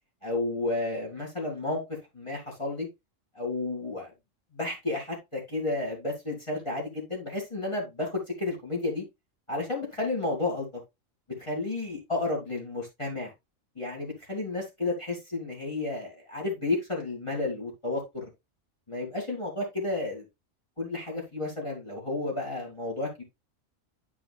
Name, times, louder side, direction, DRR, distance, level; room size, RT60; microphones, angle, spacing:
voice 1, 0.2-1.8 2.1-2.9 3.4-4.1 4.5-8.1 8.4-9.0 9.5-10.7 11.4-13.3 13.8-18.3 18.9-20.2 20.8-23.2, left 2 dB, 20° left, 2.2 m, -32 dB
9.6 x 4.8 x 2.4 m
omnidirectional pair, 1.4 m